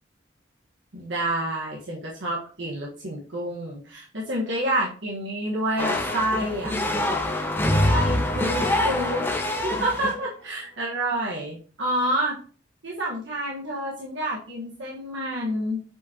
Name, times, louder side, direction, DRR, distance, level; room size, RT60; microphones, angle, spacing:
voice 1, 0.9-6.7 7.9-12.3 12.8-15.8, right 1 dB, 80° right, -4 dB, 1.4 m, -28 dB
sound 1, 5.8-10.2, left 1 dB, 10° left, 1.1 m, -25 dB
8.0 x 5.4 x 2.8 m, 0.40 s
head